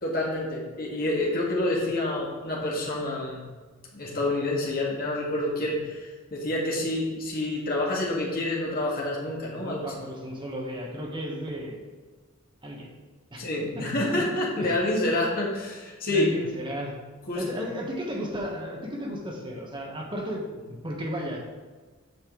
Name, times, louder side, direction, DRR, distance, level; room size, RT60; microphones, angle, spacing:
voice 1, 0.0-3.4 3.9-9.8 13.4-16.3 17.3-17.6, left 1 dB, 45° left, -3 dB, 1.8 m, -28 dB
voice 2, 9.6-11.8 12.6-12.9 13.3-13.4 13.7-13.8 14.6-14.8 16.1-16.9 17.3-20.4 20.8-21.5, equal, 25° right, -1 dB, 1.3 m, -34 dB
7.9 x 5.3 x 3.9 m, 1.4 s
head